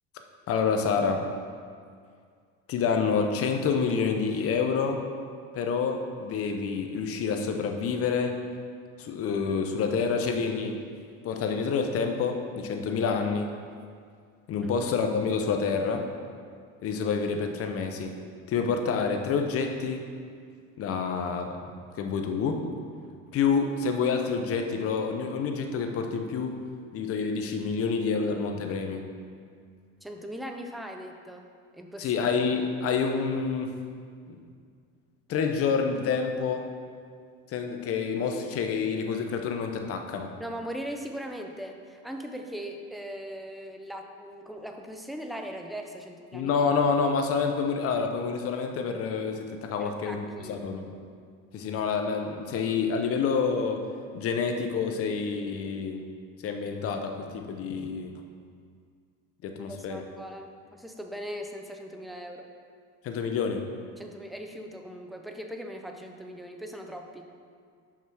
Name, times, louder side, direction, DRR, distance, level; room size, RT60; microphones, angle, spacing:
voice 1, 0.5-1.3 2.7-5.0 5.5-8.4 9.0-10.8 11.2-13.5 14.5-16.1 16.8-18.2 18.5-20.1 20.8-21.6 22.0-22.7 23.3-26.6 26.9-29.0 32.0-33.8 34.3-34.4 35.3-36.7 37.5-40.3 46.3-50.9 51.5-53.9 54.1-56.0 56.4-58.1 59.4-60.0 63.0-63.6, left 5 dB, 45° left, 5 dB, 0.8 m, -28 dB
voice 2, 30.0-31.5 31.7-32.2 40.4-46.7 49.8-50.6 59.5-62.5 64.0-67.3, equal, ahead, 3 dB, 0.4 m, -39 dB
5.9 x 5.8 x 4.7 m, 2.1 s
cardioid pair, 130°, 32 cm